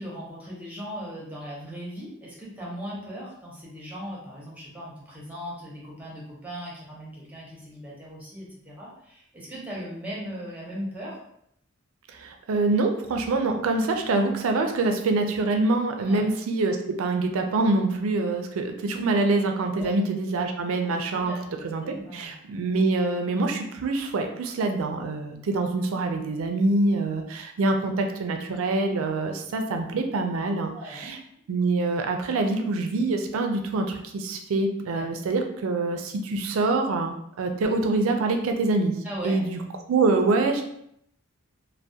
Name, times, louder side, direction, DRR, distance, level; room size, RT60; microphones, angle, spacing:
voice 1, 0.0-11.2 16.0-16.3 19.7-19.9 20.8-22.3 30.7-31.1 34.9-35.3 39.0-39.4, equal, 10° right, -5 dB, 0.7 m, -38 dB
voice 2, 12.1-21.3 21.6-31.2 31.5-38.9 39.2-39.6 39.9-40.6, right 3 dB, 85° right, 4 dB, 0.4 m, -25 dB
2.2 x 2.1 x 2.7 m, 0.74 s
head